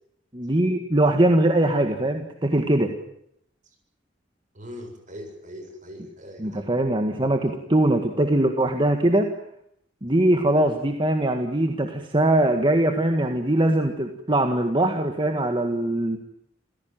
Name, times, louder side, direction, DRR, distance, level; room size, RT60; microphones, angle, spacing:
voice 1, 0.3-3.0 6.4-9.3 10.0-16.2, right 1 dB, 25° right, 5 dB, 1.8 m, -21 dB
voice 2, 4.5-6.7 7.1-7.2, equal, 40° right, 5 dB, 7.3 m, -41 dB
29.0 x 16.5 x 9.2 m, 0.74 s
head